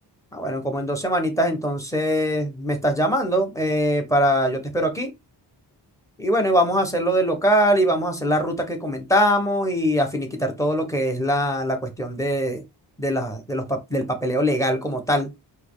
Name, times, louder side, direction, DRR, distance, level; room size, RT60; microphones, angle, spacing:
voice 1, 0.3-5.1 6.2-12.6 13.0-15.3, equal, 5° left, 1.1 m, -22 dB
4.3 x 3.1 x 3.9 m
wide cardioid pair, 150°, 42 cm